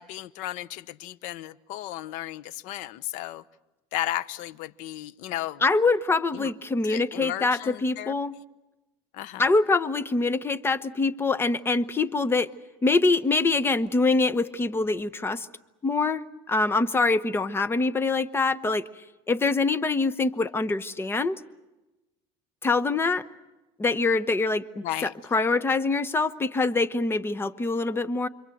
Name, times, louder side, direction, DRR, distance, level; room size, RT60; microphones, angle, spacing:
voice 1, 0.0-3.4 3.9-5.6 6.3-6.5 6.9-8.1 9.1-9.4 24.8-25.1, left 14 dB, 65° left, 17 dB, 1.1 m, -34 dB
voice 2, 5.6-8.4 9.4-12.5 12.8-15.5 15.8-18.9 19.3-21.4 22.6-23.2 23.8-28.3, left 3 dB, 15° left, 13 dB, 1.0 m, -24 dB
29.5 x 23.5 x 7.9 m, 1.0 s
cardioid pair, 135°, 14 cm